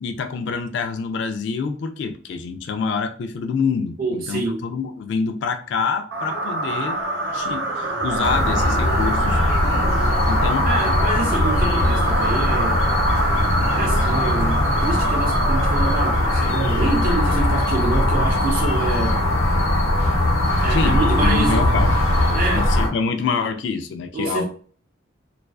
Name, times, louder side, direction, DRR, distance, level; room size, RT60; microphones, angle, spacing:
voice 1, 0.0-7.0 7.3-9.4 10.3-10.7 20.7-24.5, left 5 dB, 60° left, 0.3 m, -26 dB
voice 2, 4.0-4.6 10.6-12.9 13.8-19.3 20.6-21.7 22.3-22.7 24.1-24.5, right 2 dB, 45° right, 0.3 m, -26 dB
sound 1, 6.1-16.8, right 2 dB, 75° right, 0.7 m, -26 dB
sound 2, 8.2-22.9, left 1 dB, 85° left, 0.7 m, -20 dB
2.3 x 2.3 x 2.3 m
head